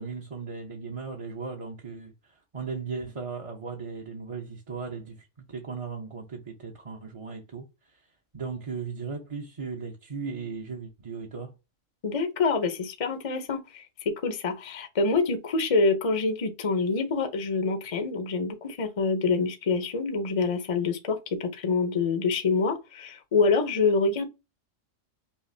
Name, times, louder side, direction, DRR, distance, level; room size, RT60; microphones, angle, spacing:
voice 1, 0.0-7.7 8.3-11.5, right 5 dB, 30° right, 0.7 m, -37 dB
voice 2, 12.0-24.3, left 4 dB, 35° left, 0.7 m, -26 dB
5.7 x 2.5 x 2.7 m
omnidirectional pair, 1.3 m